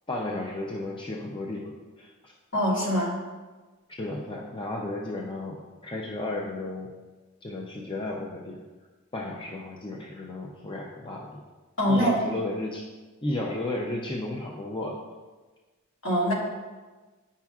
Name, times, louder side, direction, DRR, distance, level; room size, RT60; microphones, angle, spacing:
voice 1, 0.1-1.7 2.0-2.3 3.9-6.9 7.4-8.6 9.1-11.4 11.9-12.8 13.2-15.0, left 2 dB, 25° left, -1 dB, 0.5 m, -33 dB
voice 2, 2.5-3.2 11.8-12.2 16.0-16.3, equal, 65° left, -5 dB, 2.0 m, -23 dB
9.7 x 5.7 x 2.4 m, 1.3 s
head